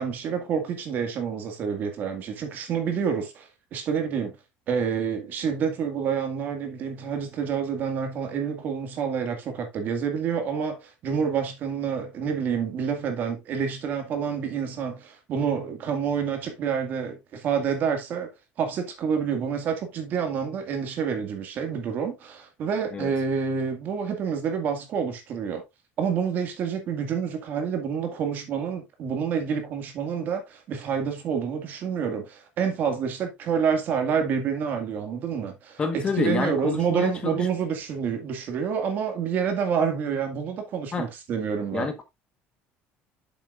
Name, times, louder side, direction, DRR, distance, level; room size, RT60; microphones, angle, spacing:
voice 1, 0.0-4.4 4.7-18.3 18.6-25.6 26.0-41.9, right 6 dB, 45° right, 2.1 m, -28 dB
voice 2, 35.8-37.4 40.9-41.1 41.7-42.0, left 4 dB, 20° left, 1.3 m, -27 dB
9.0 x 7.1 x 2.5 m
cardioid pair, 170°, 5 cm